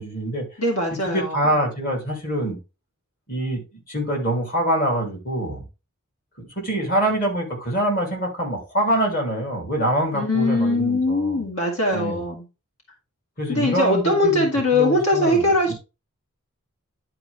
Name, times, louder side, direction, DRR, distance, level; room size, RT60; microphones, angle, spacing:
voice 1, 0.0-0.4 1.0-2.6 3.3-3.6 3.9-5.6 6.4-11.4 11.9-12.2 13.4-14.5 14.7-15.7, right 1 dB, 40° left, 3.0 m, -25 dB
voice 2, 0.6-1.5 10.1-12.4 13.5-15.7, left 1 dB, 75° left, 2.3 m, -21 dB
11.0 x 4.6 x 3.4 m
head